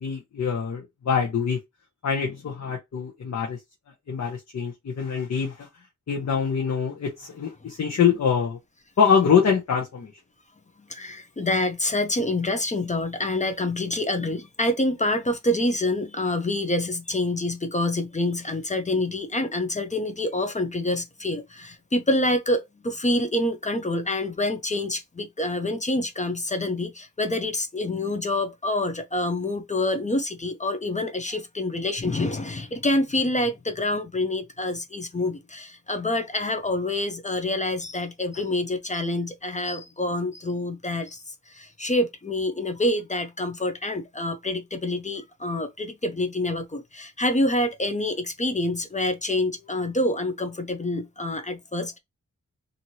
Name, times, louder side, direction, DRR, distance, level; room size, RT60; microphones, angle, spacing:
voice 1, 0.0-1.6 2.0-3.6 4.1-5.7 6.1-8.6 9.0-10.1, left 7 dB, 65° left, 0.8 m, -24 dB
voice 2, 10.9-41.2 41.5-52.0, left 1 dB, 25° left, 0.5 m, -27 dB
3.0 x 2.6 x 2.7 m
wide cardioid pair, 110°, 30 cm